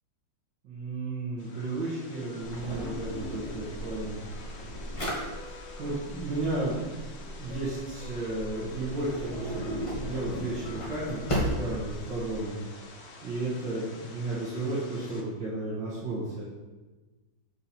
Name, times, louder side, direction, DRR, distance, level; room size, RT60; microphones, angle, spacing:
voice 1, 0.6-4.2 5.5-12.6 13.2-16.4, right 2 dB, 80° right, -7 dB, 2.2 m, -33 dB
sound 1, 1.4-15.2, left 3 dB, 45° left, 0.9 m, -49 dB
Drawer open or close, 2.4-12.4, equal, 20° left, 1.4 m, -36 dB
sound 2, 4.6-13.6 13.9-14.0, left 5 dB, 90° left, 1.4 m, -51 dB
6.9 x 5.7 x 4.4 m, 1.2 s
omnidirectional pair, 2.0 m